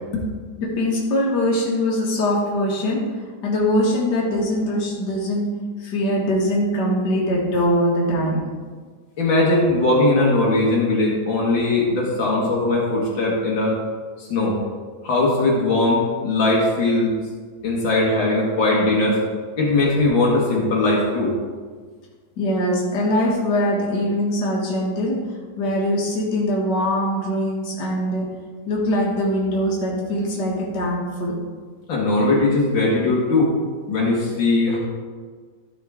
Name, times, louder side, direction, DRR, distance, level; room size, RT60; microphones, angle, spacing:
voice 1, 0.6-3.0 3.4-5.5 5.8-8.4 22.4-25.2 25.6-28.3 28.7-31.3, equal, 65° left, -4 dB, 2.3 m, -22 dB
voice 2, 9.2-13.8 14.3-14.6 15.0-17.1 17.6-19.2 19.6-21.3 31.9-33.5 33.9-34.8, left 2 dB, 80° left, -3 dB, 2.3 m, -19 dB
13.0 x 5.6 x 3.6 m, 1.5 s
omnidirectional pair, 2.1 m